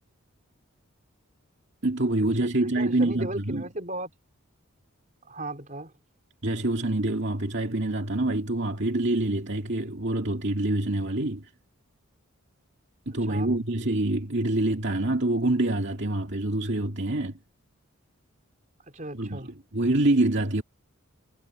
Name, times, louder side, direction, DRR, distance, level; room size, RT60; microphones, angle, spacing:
voice 1, 1.8-3.6 6.4-11.5 13.1-17.4 19.1-19.4 19.7-20.6, right 2 dB, 55° right, 2.4 m, -26 dB
voice 2, 2.8-4.1 5.2-5.9 13.3-13.5 18.9-19.5, right 1 dB, 35° right, 4.2 m, -36 dB
head